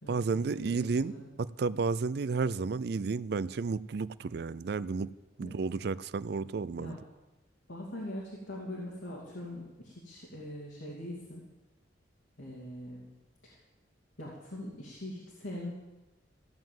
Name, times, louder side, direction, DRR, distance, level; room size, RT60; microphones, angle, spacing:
voice 1, 0.1-1.1 1.4-5.1 5.4-6.9, right 4 dB, 60° right, 0.4 m, -32 dB
voice 2, 7.7-11.4 12.4-13.1 13.4-13.6 14.2-15.7, left 1 dB, 90° left, 2.7 m, -42 dB
15.0 x 7.3 x 7.7 m
head